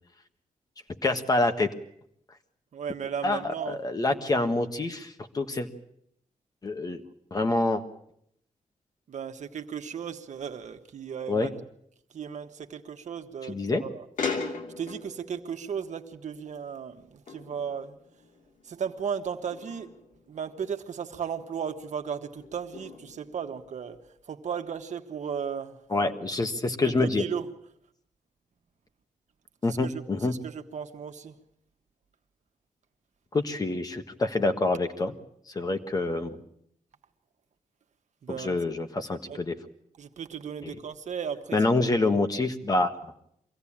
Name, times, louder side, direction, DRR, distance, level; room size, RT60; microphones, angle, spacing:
voice 1, 1.0-1.7 3.2-5.7 6.6-7.0 7.3-7.8 11.3-11.5 13.5-13.8 25.9-27.2 29.6-30.3 33.3-35.1 35.5-36.4 38.3-39.5 40.6-40.8 41.5-42.9, left 2 dB, 25° left, 7 dB, 1.5 m, -26 dB
voice 2, 2.7-3.8 9.1-11.5 12.1-14.0 14.8-18.0 18.6-19.9 20.3-24.0 24.2-25.8 26.8-27.5 29.7-31.4 38.2-38.6 39.3-39.4 40.0-41.6, right 7 dB, 60° right, 6 dB, 1.4 m, -35 dB
sound 1, 14.2-17.0 17.3-18.8 19.5-20.8 21.5-21.6 22.4-23.7, left 4 dB, 70° left, 2.9 m, -39 dB
24.0 x 16.5 x 8.7 m, 0.72 s
wide cardioid pair, 170°, 14 cm